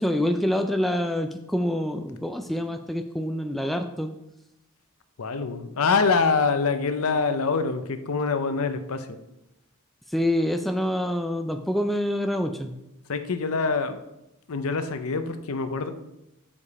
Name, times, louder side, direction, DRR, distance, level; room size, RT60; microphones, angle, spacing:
voice 1, 0.0-4.1 10.1-12.7, left 1 dB, ahead, 5 dB, 0.3 m, -26 dB
voice 2, 5.2-9.2 13.1-14.0 14.5-15.9, left 4 dB, 80° left, 9 dB, 0.7 m, -25 dB
7.1 x 5.0 x 4.2 m, 0.88 s
head